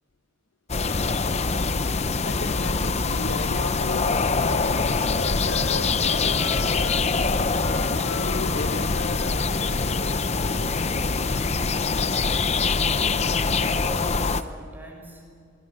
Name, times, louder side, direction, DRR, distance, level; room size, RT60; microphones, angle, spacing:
sound 1, 0.7-14.4, left 4 dB, 30° left, 0.7 m, -24 dB
voice 1, 2.2-7.4 7.9-9.4, left 2 dB, 70° left, 9 dB, 1.0 m, -36 dB
Wind instrument woodwind instrument, 4.1-7.1 7.5-11.2, left 4 dB, 90° left, 1.1 m, -40 dB
voice 2, 11.8-15.3, equal, 10° right, 1 dB, 6.1 m, -42 dB
26.0 x 22.5 x 6.5 m, 2.3 s
head